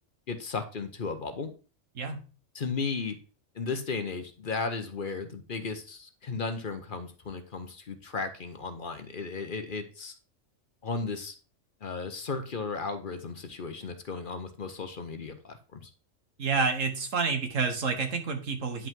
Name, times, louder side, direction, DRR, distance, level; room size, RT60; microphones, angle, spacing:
voice 1, 0.3-1.5 2.5-3.2 3.5-10.1 10.8-11.3 11.8-15.9, left 4 dB, 45° left, 8 dB, 0.9 m, -35 dB
voice 2, 16.4-18.9, right 4 dB, 85° right, 6 dB, 1.8 m, -29 dB
9.8 x 5.4 x 3.7 m, 0.35 s
omnidirectional pair, 1.3 m